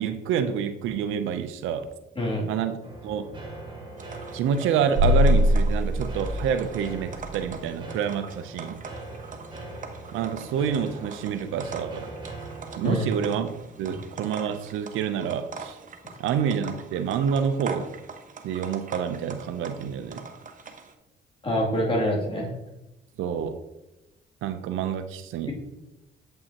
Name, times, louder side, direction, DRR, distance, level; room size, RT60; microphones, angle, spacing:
voice 1, 0.0-1.9 2.5-2.7 3.0-3.3 4.3-8.8 10.1-12.1 12.8-13.5 13.8-15.8 16.2-17.9 18.4-20.2 23.2-23.6 24.4-25.5, right 8 dB, 85° right, 0.6 m, -28 dB
sound 1, 2.8-14.8, right 2 dB, 25° right, 1.6 m, -42 dB
sound 2, 4.0-20.9, right 5 dB, 40° right, 0.8 m, -43 dB
sound 3, 5.0-7.4, left 1 dB, 70° right, 1.4 m, -22 dB
voice 2, 21.4-22.5, equal, 25° left, 2.5 m, -25 dB
8.3 x 5.5 x 2.9 m
cardioid pair, 90°, 20 cm